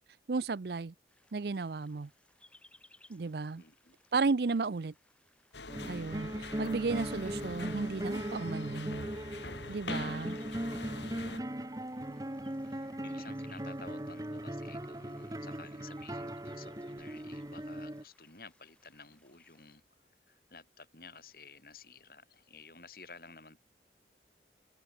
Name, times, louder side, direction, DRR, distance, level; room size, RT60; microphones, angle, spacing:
voice 1, 0.3-0.9 1.3-2.1 3.1-3.6 4.1-4.9 5.9-9.1 9.7-10.4, right 4 dB, 65° right, 0.5 m, -34 dB
sound 1, 1.1-19.8, left 2 dB, 5° left, 6.1 m, -67 dB
voice 2, 3.6-4.0 10.5-11.3 12.1-23.6, left 4 dB, 55° left, 7.0 m, -54 dB
sound 2, 5.5-11.4, left 3 dB, 90° left, 5.3 m, -45 dB
sound 3, 5.7-18.0, right 1 dB, 20° right, 1.1 m, -39 dB
open air
head